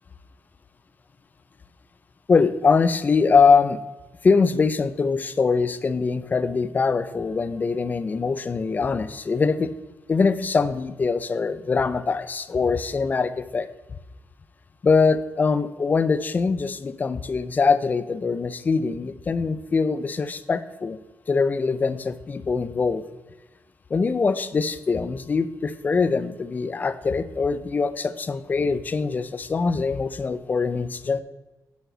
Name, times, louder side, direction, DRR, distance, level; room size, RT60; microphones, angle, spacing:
voice 1, 2.3-3.8 4.2-9.7 10.1-13.7 14.8-21.0 21.3-23.0 23.9-31.2, left 4 dB, 30° left, 12 dB, 0.5 m, -23 dB
9.4 x 6.1 x 3.9 m, 1.1 s
wide cardioid pair, 145°, 6 cm